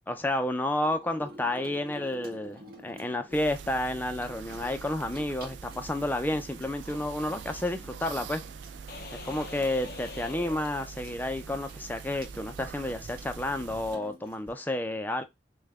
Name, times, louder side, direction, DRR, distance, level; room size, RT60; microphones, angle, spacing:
voice 1, 0.1-8.4 9.1-15.2, left 1 dB, 10° left, 0.5 m, -31 dB
Water tap faucet / Sink (filling or washing), 0.8-14.5, equal, 55° right, 1.6 m, -50 dB
sound 1, 3.3-14.0, right 6 dB, 75° right, 0.3 m, -44 dB
sound 2, 8.9-11.5, left 5 dB, 55° left, 0.5 m, -45 dB
5.5 x 2.3 x 3.5 m
head